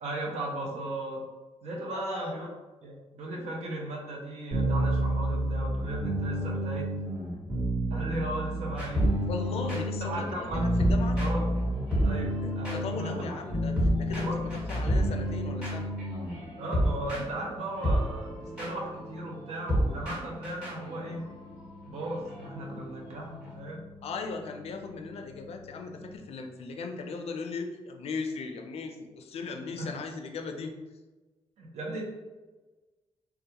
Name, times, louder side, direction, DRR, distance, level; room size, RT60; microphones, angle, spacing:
voice 1, 0.0-1.2 1.6-2.5 2.8-6.9 7.9-9.1 9.6-9.8 10.1-10.7 11.2-11.5 12.0-13.4 14.1-14.8 16.6-21.3 21.9-23.8 29.8-29.9 31.6-32.0, right 1 dB, 80° right, -1 dB, 0.6 m, -36 dB
voice 2, 1.9-2.4 9.3-11.2 12.4-13.7 14.0-14.4 14.7-15.9 24.0-30.7, left 4 dB, 65° left, 4 dB, 0.4 m, -38 dB
sound 1, 4.5-16.4, equal, 45° right, 1.1 m, -30 dB
sound 2, 7.2-26.2, left 2 dB, 25° right, 0.6 m, -50 dB
sound 3, 8.8-11.6 11.9-23.5, equal, 10° right, 1.2 m, -32 dB
2.3 x 2.2 x 2.8 m, 1.2 s
cardioid pair, 90°, 11 cm